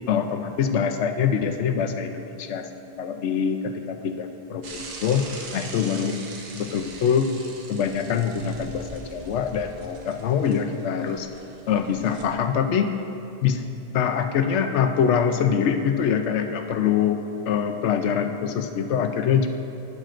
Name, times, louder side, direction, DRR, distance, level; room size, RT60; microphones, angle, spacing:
voice 1, 0.1-2.7 3.0-5.2 5.5-6.2 6.5-7.3 7.7-11.3 11.7-13.0 13.4-13.6 13.9-19.5, left 7 dB, 85° left, 7 dB, 0.9 m, -24 dB
Bicycle / Mechanisms, 4.6-12.2, right 3 dB, 85° right, 1.2 m, -41 dB
11.5 x 9.6 x 2.5 m, 2.8 s
omnidirectional pair, 1.2 m